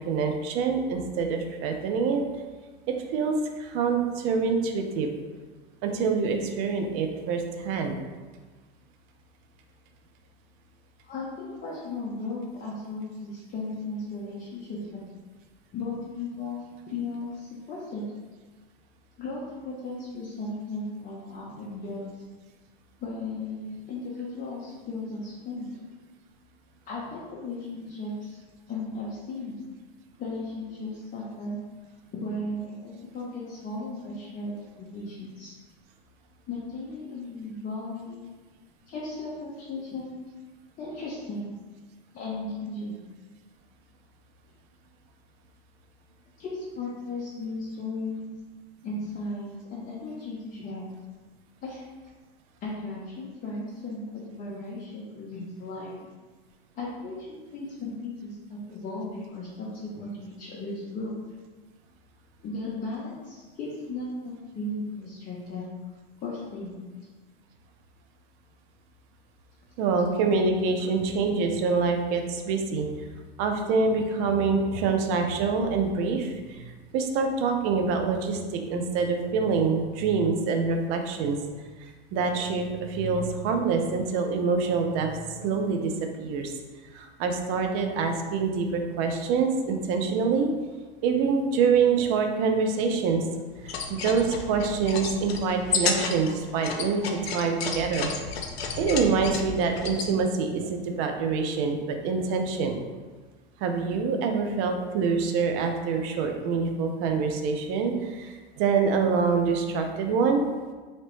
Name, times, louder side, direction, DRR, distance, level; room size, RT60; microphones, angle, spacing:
voice 1, 0.1-2.2 2.9-5.1 5.8-8.0 69.8-72.9 73.4-76.6 76.9-81.4 81.8-85.9 86.2-86.5 86.9-90.5 91.0-93.3 93.6-98.1 98.8-102.8 103.6-110.4, right 5 dB, 45° right, 4 dB, 0.5 m, -26 dB
voice 2, 11.0-15.0 15.7-18.0 19.2-22.2 23.0-25.7 26.9-28.4 28.7-29.6 30.2-31.6 32.2-35.5 36.5-38.2 38.9-40.2 40.8-41.5 42.1-43.0 46.4-48.3 48.8-50.9 51.6-51.8 52.6-55.9 56.7-61.2 62.4-65.6 66.2-66.8, left 2 dB, 30° left, -7 dB, 0.7 m, -36 dB
sound 1, 93.6-100.1, left 5 dB, 90° left, 0.5 m, -32 dB
2.9 x 2.9 x 3.0 m, 1.4 s
hypercardioid pair, 100°, 30 cm